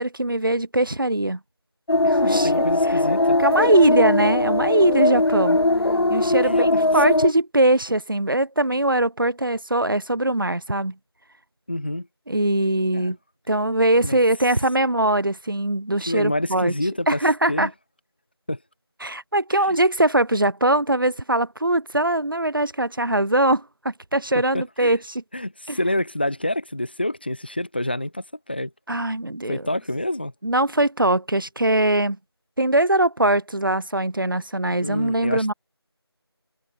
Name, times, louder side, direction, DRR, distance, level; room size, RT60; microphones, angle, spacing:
voice 1, 0.0-1.4 2.0-2.5 3.4-5.6 6.1-10.9 12.3-13.2 13.5-16.7 17.1-17.7 19.0-25.2 25.7-25.8 28.9-29.6 30.4-32.2 32.6-35.5, right 1 dB, 55° right, 4.2 m, -21 dB
sound 1, 1.9-7.3, left 2 dB, 65° left, 1.2 m, -20 dB
voice 2, 2.2-3.4 6.4-7.0 11.7-12.1 12.9-13.1 14.0-14.2 16.1-17.2 17.5-17.7 18.5-18.6 19.5-19.8 24.3-25.0 25.3-28.7 29.5-30.3 34.8-35.5, left 1 dB, 25° left, 1.2 m, -28 dB
figure-of-eight pair, 175°, 14 cm